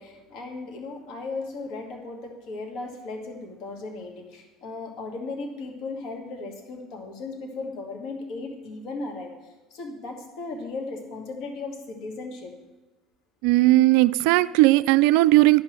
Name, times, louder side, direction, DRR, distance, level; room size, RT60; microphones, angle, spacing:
voice 1, 0.0-12.5, left 3 dB, 60° left, 2.1 m, -36 dB
voice 2, 13.4-15.6, right 18 dB, 70° right, 0.3 m, -17 dB
10.0 x 6.0 x 7.5 m
hypercardioid pair, 70°, 0 cm